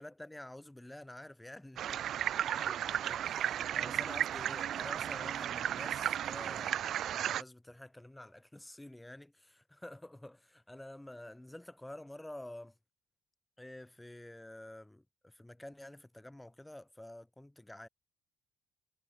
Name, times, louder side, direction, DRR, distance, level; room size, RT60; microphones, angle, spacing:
voice 1, 0.0-2.0 2.4-6.8 7.1-12.8 13.6-17.9, left 1 dB, 10° left, 6.1 m, -49 dB
sound 1, 1.8-7.4, right 10 dB, 70° right, 0.7 m, -34 dB
cardioid pair, 90°, 0 cm